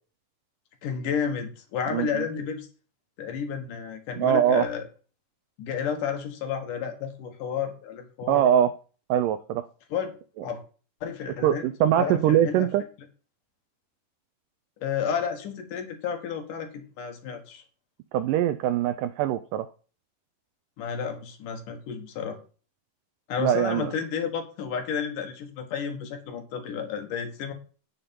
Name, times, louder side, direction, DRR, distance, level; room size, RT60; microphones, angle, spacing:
voice 1, 0.8-2.7 3.2-4.8 5.6-8.4 9.9-10.1 10.4-10.6 11.0-12.7 14.8-17.6 20.8-22.4 23.3-27.5, left 7 dB, 65° left, 5 dB, 2.9 m, -31 dB
voice 2, 4.2-4.7 8.3-8.7 9.1-9.7 11.4-12.8 18.1-19.7 23.4-23.9, right 10 dB, 85° right, 12 dB, 1.9 m, -22 dB
10.0 x 7.0 x 5.3 m, 0.37 s
omnidirectional pair, 4.4 m